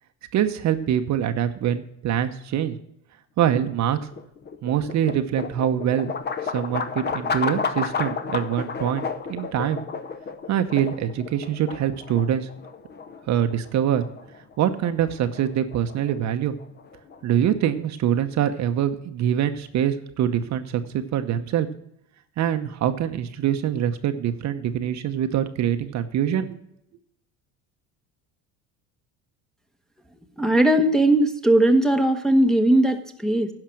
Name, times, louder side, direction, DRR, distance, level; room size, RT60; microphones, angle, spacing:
voice 1, 0.3-2.8 3.4-4.0 4.6-6.1 6.4-9.8 10.5-12.5 13.3-14.0 14.6-16.5 17.2-21.7 22.4-26.5, right 10 dB, 50° right, 9 dB, 0.9 m, -24 dB
sound 1, 3.8-17.9, left 5 dB, 30° left, 0.9 m, -32 dB
voice 2, 30.4-33.5, right 1 dB, ahead, 4 dB, 1.0 m, -19 dB
10.5 x 5.8 x 7.6 m, 0.76 s
supercardioid pair, 110°, 36 cm